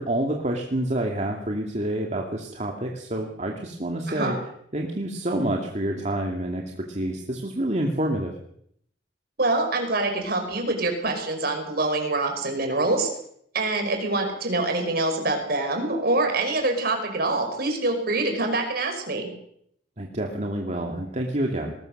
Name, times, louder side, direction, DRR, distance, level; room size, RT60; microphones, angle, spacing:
voice 1, 0.0-4.3 4.7-8.3 20.0-21.7, right 1 dB, 40° right, 1 dB, 2.4 m, -28 dB
voice 2, 9.4-13.1 13.5-19.3, right 2 dB, 55° right, 5 dB, 5.5 m, -25 dB
21.0 x 19.5 x 6.7 m, 0.69 s
head